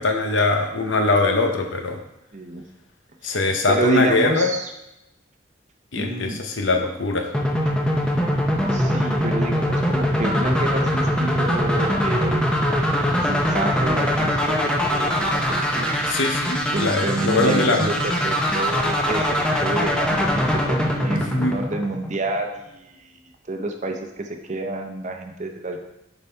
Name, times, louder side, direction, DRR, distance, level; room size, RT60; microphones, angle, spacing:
voice 1, 0.0-2.0 3.2-4.6 5.9-7.3 16.1-17.9 21.3-21.6, left 3 dB, 75° left, 5 dB, 0.8 m, -21 dB
voice 2, 2.3-2.6 3.2-4.7 6.0-6.4 8.7-15.9 16.7-23.1 23.5-25.8, right 2 dB, 40° right, 4 dB, 0.7 m, -29 dB
sound 1, 7.3-22.3, equal, 5° left, 0.7 m, -22 dB
6.9 x 4.1 x 4.4 m, 0.88 s
head